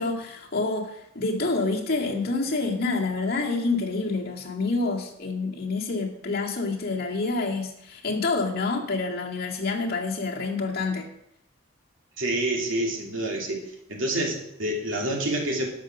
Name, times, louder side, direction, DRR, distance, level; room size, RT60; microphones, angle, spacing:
voice 1, 0.0-11.1, left 3 dB, 50° left, 0 dB, 2.1 m, -27 dB
voice 2, 12.2-13.6 13.9-15.6, right 1 dB, 70° right, 0 dB, 2.8 m, -27 dB
12.5 x 6.2 x 6.4 m, 0.78 s
head